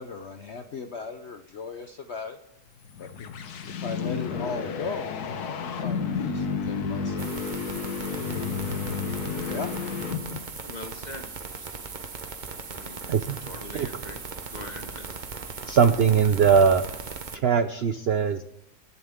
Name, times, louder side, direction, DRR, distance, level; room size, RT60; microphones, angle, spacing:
voice 1, 0.0-2.4 3.0-3.3 3.6-7.6 9.4-9.7, left 4 dB, 55° left, 7 dB, 0.9 m, -37 dB
sound 1, 2.8-10.6, left 5 dB, 70° left, 1.5 m, -31 dB
sound 2, 7.2-17.4, right 4 dB, 35° right, 0.9 m, -38 dB
voice 2, 10.6-11.9 12.6-13.0 13.4-14.2 14.5-15.2, left 2 dB, 25° left, 4 dB, 1.6 m, -42 dB
voice 3, 13.1-13.4 13.7-13.9 15.7-16.8 17.3-18.4, right 6 dB, 65° right, 11 dB, 0.6 m, -20 dB
22.5 x 11.0 x 3.6 m, 0.79 s
omnidirectional pair, 1.7 m